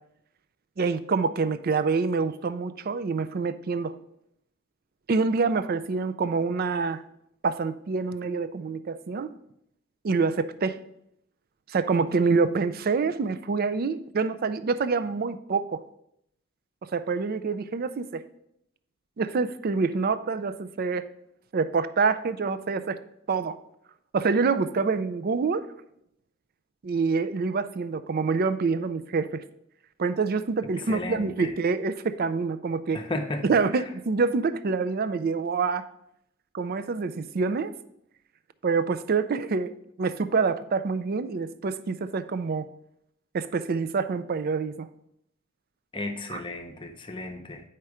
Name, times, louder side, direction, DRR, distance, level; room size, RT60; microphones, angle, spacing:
voice 1, 0.8-4.0 5.1-7.0 7.4-9.3 10.0-10.8 11.7-15.8 16.9-18.2 19.2-21.1 21.5-23.0 23.3-23.6 24.1-25.7 26.8-29.4 30.0-33.0 33.5-35.8 36.5-37.7 38.6-39.7 40.0-42.7 43.3-44.9 46.3-46.4, right 4 dB, 45° right, 13 dB, 0.4 m, -26 dB
voice 2, 30.9-31.5 32.9-33.4 33.7-33.9 45.9-47.6, left 2 dB, 25° left, 5 dB, 0.8 m, -34 dB
9.3 x 4.4 x 4.9 m, 0.76 s
head